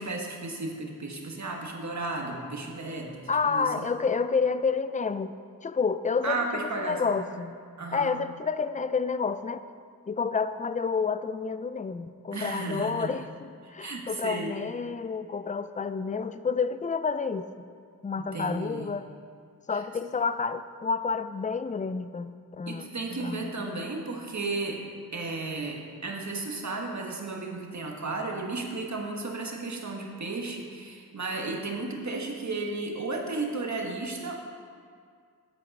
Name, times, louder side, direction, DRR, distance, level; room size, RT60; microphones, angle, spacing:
voice 1, 0.0-3.9 6.2-7.2 7.8-8.1 12.3-13.1 13.8-14.7 18.2-19.0 19.7-19.8 22.6-24.8 25.1-34.4, right 3 dB, 50° right, 1 dB, 1.3 m, -34 dB
voice 2, 3.3-5.3 5.6-7.6 7.9-9.6 10.1-17.5 18.0-19.1 19.7-22.8 23.2-23.8, left 5 dB, 25° left, 12 dB, 0.3 m, -29 dB
8.5 x 8.1 x 5.3 m, 2.2 s
wide cardioid pair, 110°, 35 cm